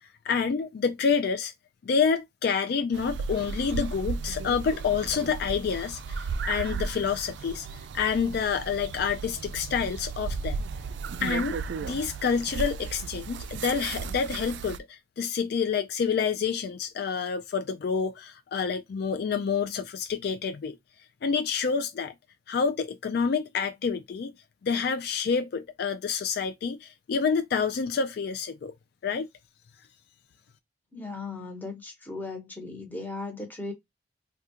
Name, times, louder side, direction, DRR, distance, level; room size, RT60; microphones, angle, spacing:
voice 1, 0.2-1.5 1.8-10.6 11.2-20.8 21.2-22.1 22.5-24.3 24.6-28.7 29.0-29.3, left 6 dB, 55° left, 0.3 m, -28 dB
sound 1, 2.9-14.8, right 5 dB, 70° right, 0.3 m, -35 dB
voice 2, 30.9-33.7, left 3 dB, 10° left, 1.0 m, -37 dB
3.6 x 2.3 x 2.8 m
head